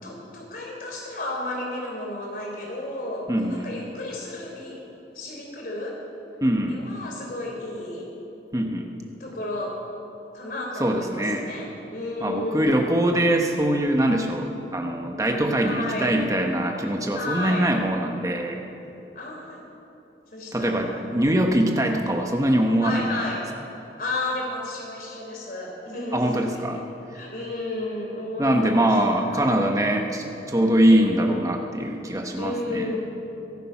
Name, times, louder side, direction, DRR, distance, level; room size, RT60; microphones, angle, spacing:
voice 1, 0.0-4.8 5.1-6.0 6.7-8.0 9.2-9.7 10.3-12.9 15.6-16.2 17.1-17.7 19.1-19.6 20.3-21.4 22.8-23.4 24.0-26.8 27.1-29.5 30.6-31.4 32.3-33.0, left 2 dB, 50° left, -1 dB, 3.7 m, -33 dB
voice 2, 3.3-3.7 6.4-6.8 8.5-8.9 10.8-11.5 12.2-18.6 20.5-23.0 26.1-26.8 28.4-32.9, right 1 dB, 20° right, 3 dB, 1.1 m, -23 dB
23.5 x 8.8 x 5.8 m, 2.9 s
head